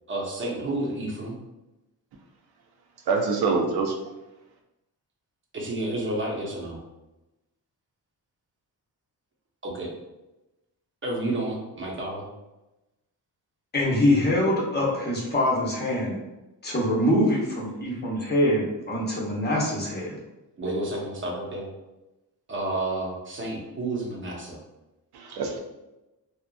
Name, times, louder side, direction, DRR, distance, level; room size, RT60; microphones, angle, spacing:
voice 1, 0.1-1.3 5.5-6.8 9.6-9.9 11.0-12.3 20.6-21.7 22.5-24.6, right 2 dB, 30° right, -2 dB, 0.7 m, -30 dB
voice 2, 3.1-3.9 25.2-25.6, right 4 dB, 80° right, 2 dB, 0.6 m, -25 dB
voice 3, 13.7-16.2 16.6-20.2, left 1 dB, 25° left, -3 dB, 0.8 m, -24 dB
2.8 x 2.4 x 2.3 m, 1.0 s
cardioid pair, 110°, 38 cm